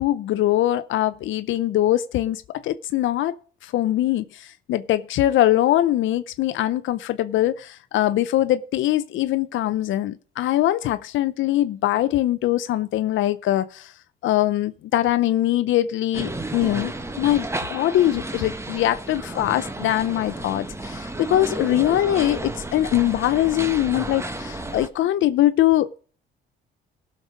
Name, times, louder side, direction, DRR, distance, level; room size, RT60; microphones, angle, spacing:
voice 1, 0.0-3.4 3.6-13.9 14.2-26.0, left 13 dB, 80° left, 0.6 m, -22 dB
sound 1, 16.1-24.9, right 2 dB, 15° right, 1.3 m, -32 dB
16.5 x 6.7 x 5.0 m
cardioid pair, 90°, 20 cm